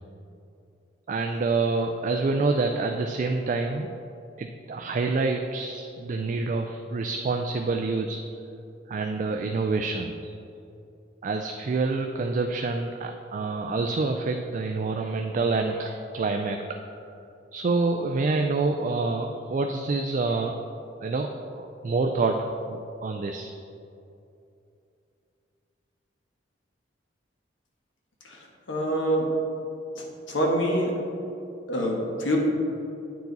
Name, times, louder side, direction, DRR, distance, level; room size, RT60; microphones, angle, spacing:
voice 1, 1.1-3.9 4.4-8.2 8.9-10.2 11.2-16.6 17.5-20.7 21.0-23.5, right 3 dB, 40° right, 4 dB, 0.3 m, -27 dB
voice 2, 28.7-29.3 30.0-30.9 31.7-32.4, equal, 80° left, -1 dB, 1.3 m, -25 dB
8.9 x 4.7 x 4.0 m, 2.7 s
head